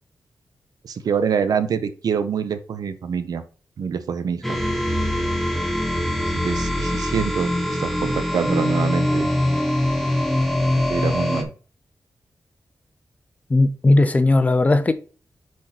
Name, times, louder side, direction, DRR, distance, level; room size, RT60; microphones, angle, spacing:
voice 1, 0.8-3.4 3.8-4.6 6.3-9.3 10.8-11.5, right 6 dB, 90° right, 0.8 m, -25 dB
sound 1, 4.4-11.4, left 1 dB, 5° left, 0.9 m, -23 dB
voice 2, 13.5-14.9, left 2 dB, 25° left, 0.6 m, -17 dB
6.4 x 4.3 x 4.2 m
wide cardioid pair, 170°, 6 cm